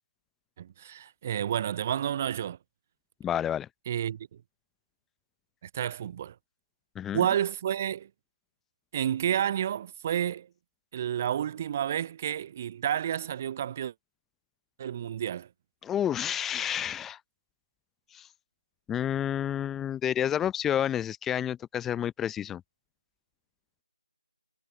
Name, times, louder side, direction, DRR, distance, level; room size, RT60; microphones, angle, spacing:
voice 1, 0.6-2.6 3.9-4.4 5.7-6.4 7.1-8.1 8.9-10.5 10.9-13.9 14.8-15.5, right 10 dB, 20° right, 0.4 m, -30 dB
voice 2, 3.2-3.7 7.0-7.2 15.8-17.2 18.1-18.3 18.9-22.6, left 10 dB, 5° left, 0.8 m, -30 dB
figure-of-eight pair, 160°, 3 cm